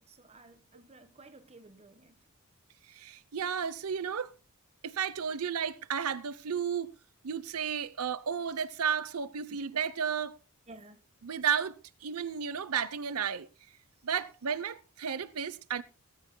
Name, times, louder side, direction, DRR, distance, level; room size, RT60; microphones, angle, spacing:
voice 1, 0.0-2.2 9.5-9.6 10.7-11.0, right 2 dB, 30° right, 1.3 m, -54 dB
voice 2, 2.9-4.3 4.8-6.9 7.2-10.4 11.2-11.8 12.0-13.5 14.0-15.8, right 7 dB, 80° right, 0.7 m, -33 dB
20.0 x 13.5 x 2.2 m
head